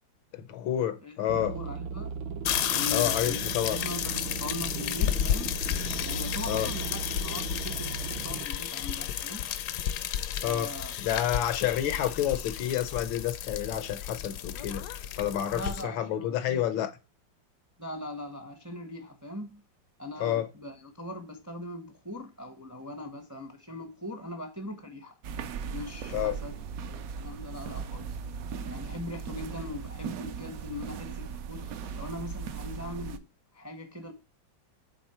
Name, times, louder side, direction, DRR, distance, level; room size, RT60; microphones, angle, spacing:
voice 1, 0.3-1.6 2.9-3.8 6.5-6.7 10.4-10.7 11.0-16.9 20.2-20.5 26.1-26.3, left 11 dB, 85° left, 1.6 m, -29 dB
sound 1, 1.3-8.5, right 6 dB, 90° right, 1.5 m, -37 dB
voice 2, 1.5-2.2 2.7-3.4 3.7-5.5 6.0-9.5 10.4-11.0 15.5-16.6 17.8-19.6 20.0-25.1 25.7-28.2 28.7-33.3 33.5-34.1, left 1 dB, 20° right, 0.5 m, -40 dB
sound 2, 2.4-15.8, left 10 dB, 70° left, 1.0 m, -32 dB
sound 3, 25.2-33.2, right 6 dB, 70° right, 0.8 m, -38 dB
8.4 x 3.5 x 4.3 m
omnidirectional pair, 2.1 m